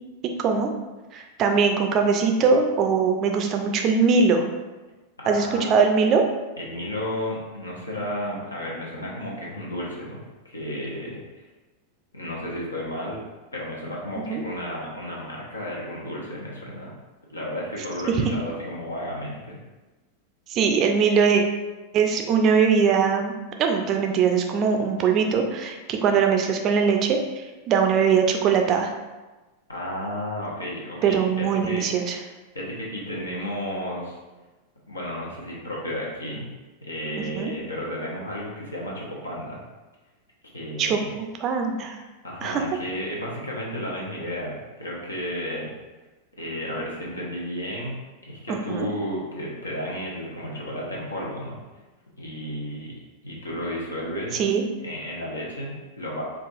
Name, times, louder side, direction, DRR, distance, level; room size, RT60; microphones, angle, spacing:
voice 1, 0.2-0.7 1.1-4.4 5.3-6.2 14.3-14.4 18.1-18.2 20.5-21.4 21.9-23.3 23.6-28.9 31.0-32.2 37.3-37.5 40.8-42.0 42.4-42.6 48.5-48.9 54.3-54.6, right 5 dB, 35° right, 4 dB, 0.4 m, -21 dB
voice 2, 5.2-5.7 6.6-11.2 12.1-13.2 13.5-16.9 17.3-19.6 29.7-31.9 32.5-34.2 34.9-36.5 36.8-39.6 40.5-41.1 42.2-45.7 46.3-48.0 48.2-51.6 52.2-52.9 53.2-54.4 54.8-56.2, equal, 80° left, -4 dB, 0.9 m, -33 dB
4.6 x 2.4 x 2.4 m, 1.2 s
figure-of-eight pair, 90°, 0 cm